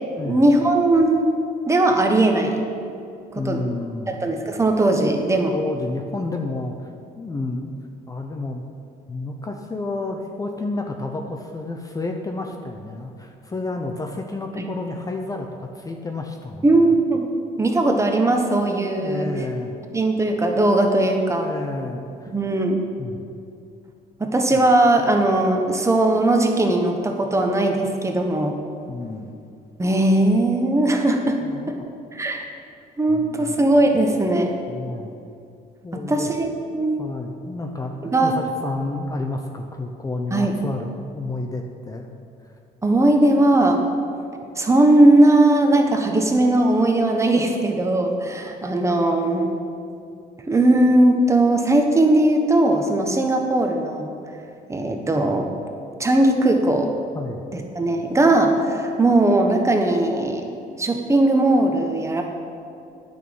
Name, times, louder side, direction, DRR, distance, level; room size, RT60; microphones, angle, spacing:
voice 1, 0.2-1.3 1.7-2.6 3.3-3.6 4.1-5.5 14.6-14.7 16.6-17.3 17.6-19.3 19.9-21.5 22.3-22.8 24.2-28.6 29.8-31.4 31.7-31.8 32.1-32.4 33.0-34.6 35.9-37.0 38.0-38.4 40.3-40.5 42.8-43.8 44.6-49.5 50.5-54.1 54.7-55.5 56.0-56.9 57.5-60.5 60.8-62.2, right 1 dB, 15° right, 3 dB, 1.2 m, -19 dB
voice 2, 3.4-4.2 5.5-6.9 7.2-7.8 8.1-8.6 9.1-17.0 19.0-19.7 21.4-22.3 23.0-23.2 24.5-24.6 28.9-29.3 31.4-31.9 33.1-33.6 34.7-35.1 35.8-36.3 37.0-42.1 42.4-42.5 56.7-56.8 57.1-57.4, left 2 dB, 20° left, 3 dB, 0.8 m, -30 dB
9.1 x 6.5 x 8.7 m, 2.5 s
cardioid pair, 110°, 17 cm